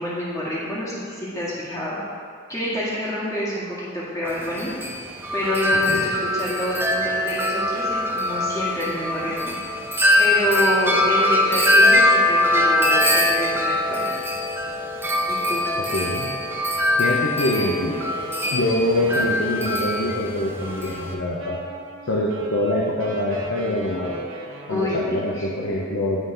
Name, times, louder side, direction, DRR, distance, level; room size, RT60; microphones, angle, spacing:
voice 1, 0.0-2.0 2.5-4.7 5.3-9.6 10.2-14.1 15.3-15.6 24.7-25.5, left 1 dB, 15° left, -8 dB, 1.8 m, -27 dB
Wind chime, 4.3-21.1, left 1 dB, 10° right, 0.6 m, -22 dB
voice 2, 15.8-16.3 17.0-18.0 18.5-21.6 22.1-24.2 24.7-26.3, left 1 dB, 70° left, -3 dB, 0.7 m, -24 dB
Wind instrument woodwind instrument, 17.2-25.2, right 2 dB, 80° right, 1.0 m, -38 dB
10.5 x 3.8 x 3.8 m, 2.2 s
head